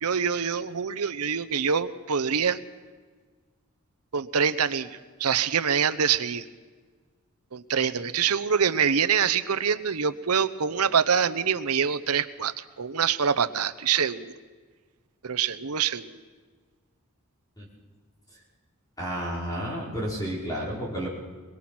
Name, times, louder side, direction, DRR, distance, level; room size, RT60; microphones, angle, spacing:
voice 1, 0.0-2.6 4.1-6.5 7.5-14.3 15.2-16.2, right 7 dB, 90° right, 13 dB, 0.9 m, -25 dB
voice 2, 19.0-21.1, equal, 15° left, -5 dB, 5.2 m, -31 dB
22.5 x 22.0 x 6.1 m, 1.5 s
head